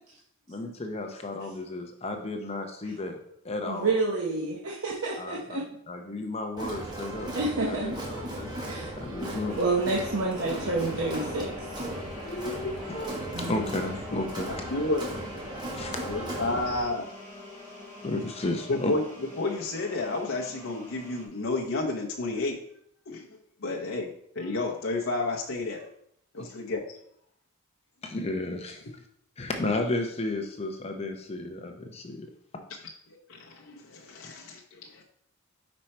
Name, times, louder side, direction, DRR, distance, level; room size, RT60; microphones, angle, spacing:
voice 1, 0.5-3.2 3.4-3.9 5.2-5.6 5.9-7.3 7.7-9.6 12.2-13.2 13.5-14.5 15.7-16.0 18.0-18.9 26.4-26.5 28.0-28.9 29.4-32.6 34.2-34.3, left 2 dB, 30° left, 4 dB, 0.6 m, -33 dB
voice 2, 3.6-5.7 7.3-7.9 8.6-8.9 9.2-11.8 13.3-13.7, right 3 dB, 70° right, -2 dB, 0.8 m, -29 dB
Crowd, 6.6-16.8, right 1 dB, 20° right, 1.2 m, -37 dB
sound 1, 9.5-21.3, left 2 dB, 10° left, 1.5 m, -44 dB
voice 3, 14.7-15.1 16.0-17.1 18.7-19.0 19.4-22.6 23.1-23.2 23.6-25.8 26.3-26.8 33.1-35.0, left 2 dB, 70° left, -1 dB, 0.7 m, -31 dB
5.3 x 4.4 x 4.3 m, 0.69 s
head